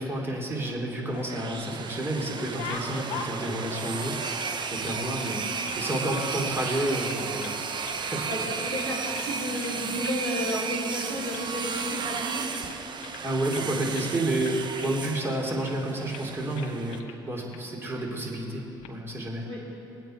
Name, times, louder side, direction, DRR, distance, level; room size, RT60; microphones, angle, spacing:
voice 1, 0.0-5.4 5.8-7.5 8.0-8.3 8.6-8.7 13.2-19.4, right 1 dB, 20° right, -1 dB, 3.1 m, -30 dB
sound 1, 0.8-1.7 2.0-5.0 5.2-6.3 6.6-6.7 7.0-7.6 7.8-8.5 8.8-9.8 10.0-10.2 10.5-10.6 10.9-11.5 11.8-13.7 13.9-14.1 14.4-15.3 15.7-15.9 16.1-16.3 16.6-17.2 17.5-17.6 18.6-18.9, left 6 dB, 70° left, 1.1 m, -42 dB
sound 2, 1.1-17.0, right 5 dB, 45° right, 0.9 m, -34 dB
voice 2, 8.2-12.5 17.9-18.1 19.5-19.6, equal, 75° right, -5 dB, 3.8 m, -33 dB
21.0 x 8.9 x 4.5 m, 2.8 s
hypercardioid pair, 65°, 11 cm